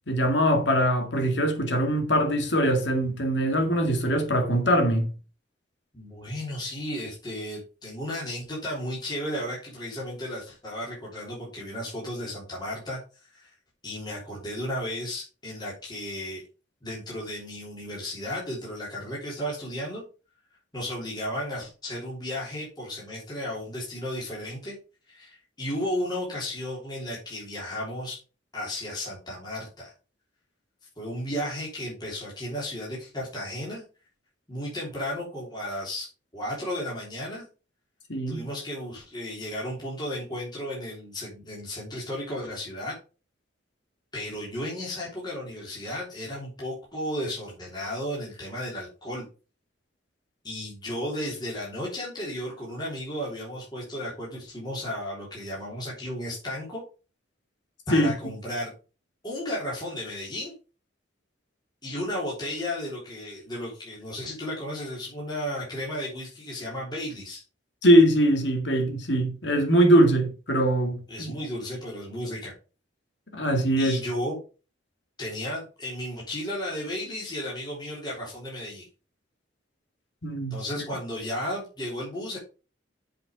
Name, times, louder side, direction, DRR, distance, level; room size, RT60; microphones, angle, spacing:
voice 1, 0.1-5.0 38.1-38.5 57.9-58.1 67.8-71.4 73.3-74.0 80.2-80.9, equal, 70° left, 2.1 m, -22 dB
voice 2, 5.9-13.0 13.3-13.5 13.8-16.4 16.8-20.0 20.7-24.8 25.1-28.2 28.5-29.9 31.0-33.8 34.5-37.5 38.3-43.0 44.1-49.2 50.4-56.8 57.9-58.7 59.2-60.5 61.8-67.4 71.1-72.5 73.8-74.4 75.2-78.9 80.5-82.4, left 1 dB, 25° left, 3.5 m, -34 dB
7.6 x 5.5 x 5.2 m
head